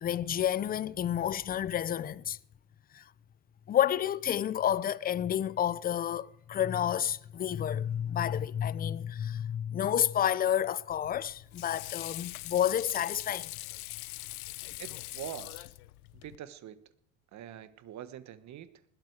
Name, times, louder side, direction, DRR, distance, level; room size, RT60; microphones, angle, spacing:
voice 1, 0.0-2.4 2.9-3.0 3.7-13.5, left 10 dB, 20° left, 0.5 m, -30 dB
Water / Sink (filling or washing), 10.9-16.4, left 19 dB, 90° left, 0.8 m, -42 dB
voice 2, 14.8-15.8 16.1-16.8 17.3-18.7, right 11 dB, 40° right, 1.4 m, -44 dB
20.0 x 13.0 x 4.7 m
supercardioid pair, 115°, 41 cm